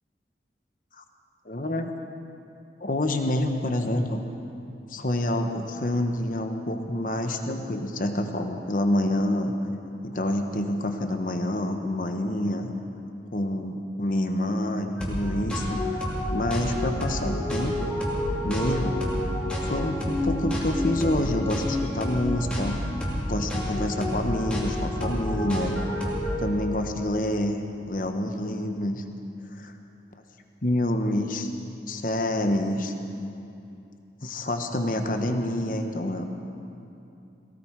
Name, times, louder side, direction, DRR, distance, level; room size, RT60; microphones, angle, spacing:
voice 1, 1.4-1.9 2.8-4.2 4.9-9.5 10.0-12.7 13.3-18.0 18.4-19.0 19.6-22.8 23.3-25.7 26.4-29.0 29.6-29.7 30.6-31.5 31.9-32.9 34.2-36.4, left 1 dB, 45° left, 5 dB, 1.1 m, -27 dB
sound 1, 15.0-26.4, left 1 dB, 5° left, 2.5 m, -29 dB
18.0 x 17.0 x 4.7 m, 2.7 s
head